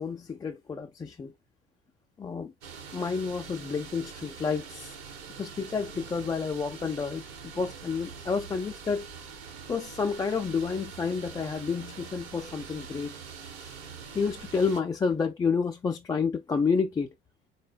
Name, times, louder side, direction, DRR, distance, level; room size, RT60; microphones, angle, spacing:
voice 1, 0.0-1.3 2.2-2.5 2.9-5.0 5.4-9.1 9.7-13.1 13.6-13.7 14.1-17.1, left 5 dB, 15° left, 0.3 m, -30 dB
sound 1, 2.6-14.8, right 6 dB, 70° right, 1.0 m, -44 dB
3.9 x 2.2 x 3.4 m
figure-of-eight pair, 60°, 32 cm